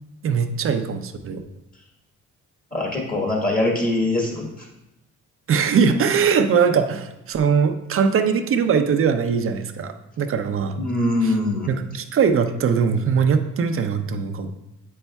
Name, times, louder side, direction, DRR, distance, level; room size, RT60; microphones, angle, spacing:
voice 1, 0.2-1.4 5.5-10.8 11.2-11.3 11.7-14.5, right 6 dB, 45° right, 8 dB, 0.6 m, -21 dB
voice 2, 2.7-4.6 10.7-11.7, left 2 dB, 30° left, -2 dB, 1.4 m, -23 dB
7.8 x 5.4 x 2.3 m, 0.90 s
cardioid pair, 90°, 30 cm